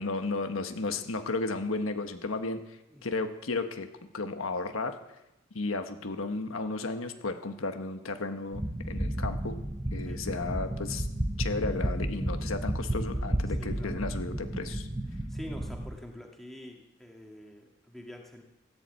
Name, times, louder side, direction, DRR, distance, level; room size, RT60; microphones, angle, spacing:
voice 1, 0.0-3.9 4.1-4.9 5.5-9.6 9.9-11.1 11.4-14.9, left 3 dB, 90° left, 7 dB, 1.2 m, -34 dB
sound 1, 8.5-15.9, right 1 dB, 15° right, 1.1 m, -32 dB
voice 2, 13.6-14.0 15.3-18.4, equal, ahead, 0 dB, 2.0 m, -46 dB
15.5 x 11.0 x 8.2 m, 0.96 s
head